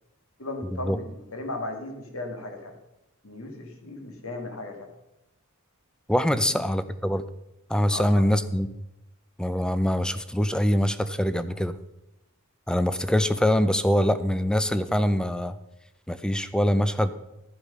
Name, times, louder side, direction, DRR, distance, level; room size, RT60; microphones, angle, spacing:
voice 1, 0.4-2.8 3.2-4.9 6.4-6.6 7.9-8.2, left 2 dB, 70° left, 4 dB, 2.1 m, -36 dB
voice 2, 6.1-7.2 7.7-8.7 9.4-11.8 12.7-15.6 16.1-17.1, equal, 5° left, 13 dB, 0.5 m, -24 dB
13.5 x 7.9 x 5.5 m, 0.92 s
head